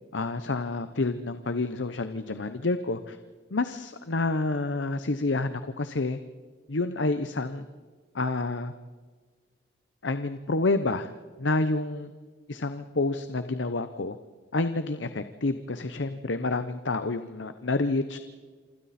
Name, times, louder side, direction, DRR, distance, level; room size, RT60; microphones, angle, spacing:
voice 1, 0.1-3.2 3.5-6.2 6.7-7.6 8.1-8.7 10.0-11.1 11.4-12.1 12.5-14.2 14.5-18.2, left 2 dB, 80° left, 10 dB, 0.9 m, -28 dB
28.0 x 25.0 x 4.3 m, 1.5 s
head